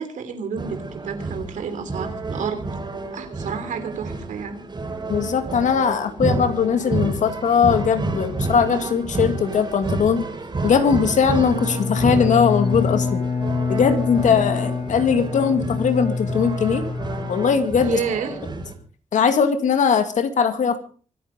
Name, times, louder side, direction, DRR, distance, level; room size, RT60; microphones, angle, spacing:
voice 1, 0.0-2.7 3.1-4.6 17.8-18.4, right 6 dB, 90° right, 8 dB, 3.2 m, -30 dB
sound 1, 0.6-18.7, right 3 dB, 35° right, 4.5 m, -30 dB
voice 2, 5.1-10.2 10.6-13.2 13.7-16.9 17.3-18.0 19.1-20.8, left 6 dB, 75° left, 8 dB, 2.3 m, -20 dB
Bowed string instrument, 11.5-18.1, left 4 dB, 45° left, 7.3 m, -26 dB
24.5 x 9.3 x 5.3 m, 0.43 s
cardioid pair, 85°, 13 cm